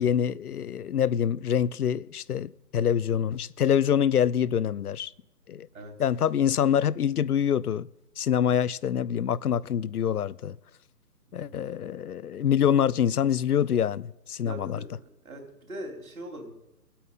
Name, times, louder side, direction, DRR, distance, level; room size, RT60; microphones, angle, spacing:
voice 1, 0.0-5.1 5.5-5.7 6.0-7.9 8.2-10.6 11.3-14.8, left 9 dB, 65° left, 0.5 m, -25 dB
voice 2, 11.4-11.7 14.4-15.4 15.7-16.5, right 1 dB, 60° right, 3.7 m, -41 dB
17.5 x 8.5 x 5.5 m
hypercardioid pair, 175°, 49 cm